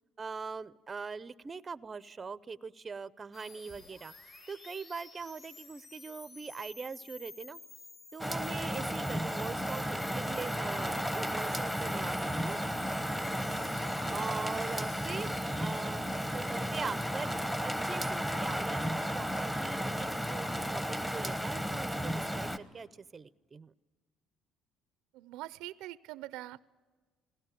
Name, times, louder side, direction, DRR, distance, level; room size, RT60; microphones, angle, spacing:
voice 1, 0.2-7.6 8.1-12.6 14.1-17.3 17.6-23.7, right 5 dB, 30° right, 17 dB, 0.6 m, -42 dB
sound 1, 3.3-15.8, left 3 dB, 45° left, 4.5 m, -52 dB
Rain, 8.2-22.6, equal, 5° left, 1.1 m, -34 dB
voice 2, 25.1-26.6, right 16 dB, 85° right, 18 dB, 0.5 m, -43 dB
20.0 x 17.5 x 9.0 m, 1.4 s
cardioid pair, 105°, 0 cm